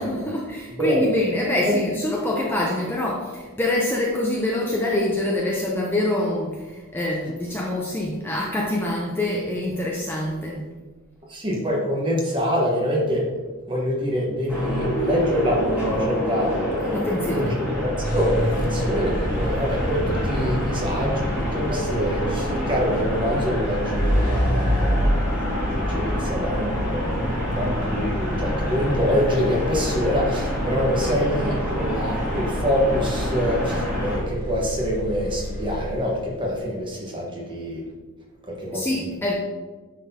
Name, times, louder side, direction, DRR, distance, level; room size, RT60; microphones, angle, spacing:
voice 1, 0.0-10.7 16.9-17.6 38.7-39.3, left 1 dB, 10° left, -3 dB, 0.5 m, -25 dB
voice 2, 0.8-1.1 1.6-1.8 11.3-13.2 13.7-16.5 16.8-37.8 38.5-39.1, equal, 20° right, -2 dB, 1.2 m, -25 dB
sound 1, 14.5-34.2, equal, 5° right, 1.9 m, -27 dB
sound 2, 18.0-36.3, equal, 40° left, 1.6 m, -29 dB
9.2 x 4.1 x 2.8 m, 1.3 s
head